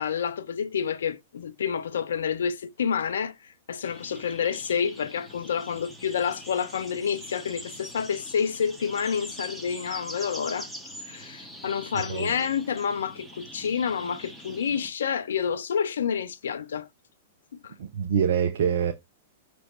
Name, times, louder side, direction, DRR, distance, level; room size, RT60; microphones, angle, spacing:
voice 1, 0.0-10.7 11.1-16.9 17.6-17.7, left 7 dB, 70° left, 0.6 m, -29 dB
sound 1, 3.8-14.9, equal, ahead, 2.2 m, -43 dB
voice 2, 17.8-18.9, right 8 dB, 65° right, 0.8 m, -25 dB
6.3 x 3.4 x 4.5 m
figure-of-eight pair, 105°, 0 cm